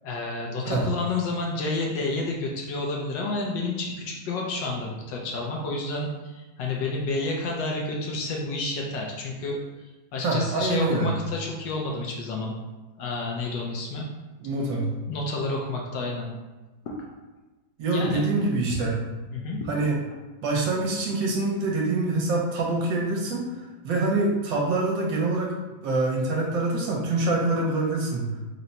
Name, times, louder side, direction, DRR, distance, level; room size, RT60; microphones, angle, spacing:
voice 1, 0.0-9.6 10.1-12.5 13.0-14.1 15.1-16.3 16.8-17.0 17.9-18.2 19.3-19.6, left 2 dB, 75° left, -1 dB, 1.2 m, -30 dB
voice 2, 10.2-11.1 14.4-14.9 17.8-19.0 19.7-20.0 20.4-25.5 25.8-28.4, right 2 dB, 70° right, -3 dB, 1.4 m, -25 dB
3.8 x 2.2 x 4.0 m, 1.2 s
omnidirectional pair, 2.1 m